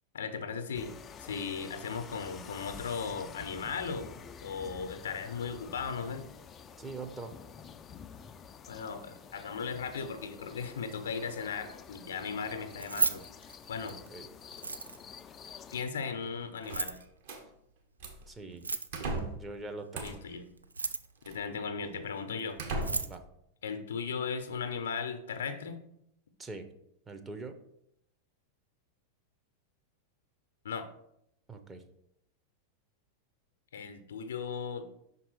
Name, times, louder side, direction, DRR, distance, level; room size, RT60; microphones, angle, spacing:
voice 1, 0.1-0.9 1.2-4.1 4.4-6.3 8.7-13.2 13.7-14.0 15.7-17.0 20.0-20.4 21.2-22.6 23.6-25.8 30.6-30.9 33.7-35.0, left 5 dB, 65° left, 9 dB, 0.6 m, -37 dB
sound 1, 0.7-15.8, left 7 dB, 25° left, 0.3 m, -49 dB
voice 2, 6.8-7.3 13.8-14.3 18.3-18.7 19.3-20.2 23.0-23.2 26.4-26.7 27.1-27.6 31.5-31.8, right 3 dB, 15° right, 6 dB, 0.6 m, -43 dB
Keys jangling, 12.7-14.1 14.5-15.2 16.6-17.0 18.5-19.2 20.6-21.2 22.4-22.5 22.7-23.2, right 4 dB, 80° right, 0.3 m, -34 dB
sound 2, 16.6-17.4 18.0-18.3 18.9-19.5 19.9-20.3 21.2-21.4 22.0-22.1 22.6-23.2, right 2 dB, 55° right, 1.1 m, -37 dB
5.9 x 4.1 x 4.5 m, 0.75 s
figure-of-eight pair, 90°, 0 cm